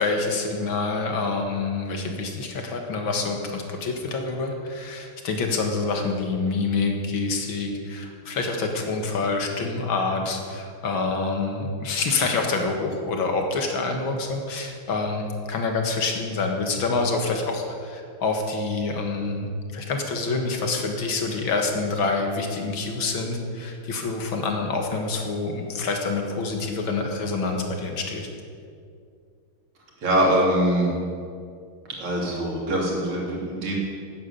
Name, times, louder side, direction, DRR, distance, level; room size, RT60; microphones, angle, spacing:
voice 1, 0.0-28.3, left 3 dB, 65° left, 3 dB, 2.4 m, -27 dB
voice 2, 30.0-30.9 32.0-33.7, right 1 dB, 90° right, -2 dB, 3.9 m, -23 dB
12.0 x 9.8 x 8.5 m, 2.3 s
omnidirectional pair, 2.4 m